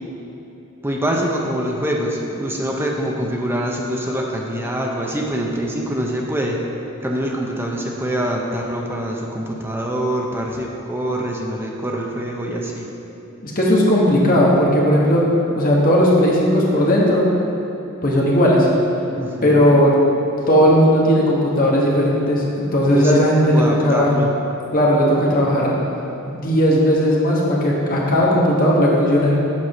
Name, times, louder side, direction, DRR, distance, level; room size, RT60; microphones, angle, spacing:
voice 1, 0.8-6.6 7.0-12.9 19.2-19.7 22.9-23.2 23.4-24.3, right 1 dB, 10° right, -1 dB, 0.7 m, -24 dB
voice 2, 13.4-15.2 15.5-17.3 18.0-18.7 19.4-19.9 20.5-24.2 24.7-25.8 26.3-29.4, equal, 40° left, -4 dB, 1.4 m, -16 dB
7.4 x 4.8 x 6.0 m, 3.0 s
head